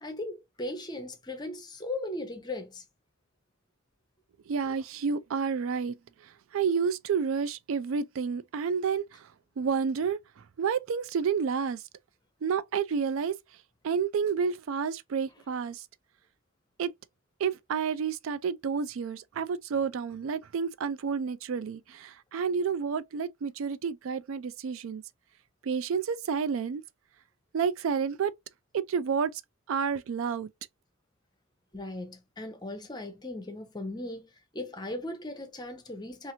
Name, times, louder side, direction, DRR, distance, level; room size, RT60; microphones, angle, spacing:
voice 1, 0.0-2.8 31.7-36.3, left 1 dB, 20° left, 0.6 m, -38 dB
voice 2, 4.5-5.9 6.5-9.2 9.6-10.2 10.6-11.8 12.4-13.3 13.8-15.8 16.8-16.9 17.4-25.0 25.6-26.8 27.5-28.3 28.7-29.4 29.7-30.5, right 6 dB, 70° right, 0.3 m, -30 dB
2.8 x 2.5 x 2.7 m
head